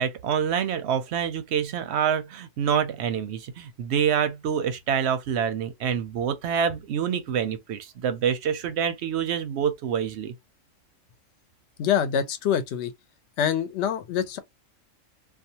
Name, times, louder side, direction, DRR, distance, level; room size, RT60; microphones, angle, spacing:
voice 1, 0.0-10.3, right 8 dB, 65° right, 0.7 m, -26 dB
voice 2, 11.8-12.9 13.4-14.4, left 8 dB, 65° left, 0.8 m, -25 dB
2.5 x 2.3 x 2.7 m
omnidirectional pair, 1.4 m